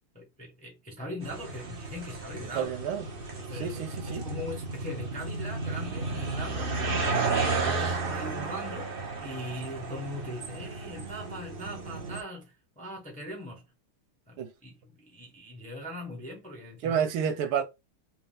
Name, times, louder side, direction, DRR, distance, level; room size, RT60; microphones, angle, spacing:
voice 1, 0.1-2.7 3.3-8.9 9.2-13.7 14.3-17.0, equal, 10° left, 0.5 m, -41 dB
sound 1, 1.2-12.2, right 3 dB, 40° right, 0.8 m, -33 dB
voice 2, 2.5-3.1 3.5-4.2 14.4-14.5 16.8-17.6, right 8 dB, 90° right, 1.6 m, -29 dB
4.4 x 2.3 x 3.7 m
omnidirectional pair, 2.2 m